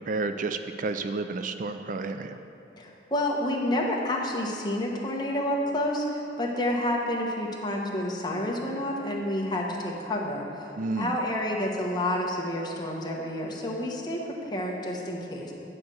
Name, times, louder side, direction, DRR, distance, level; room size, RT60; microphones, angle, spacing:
voice 1, 0.1-2.4 10.8-11.1, right 3 dB, 45° right, 8 dB, 0.4 m, -31 dB
voice 2, 2.8-10.4 11.0-15.5, left 1 dB, 25° left, -2 dB, 1.2 m, -29 dB
9.6 x 5.2 x 7.8 m, 2.8 s
head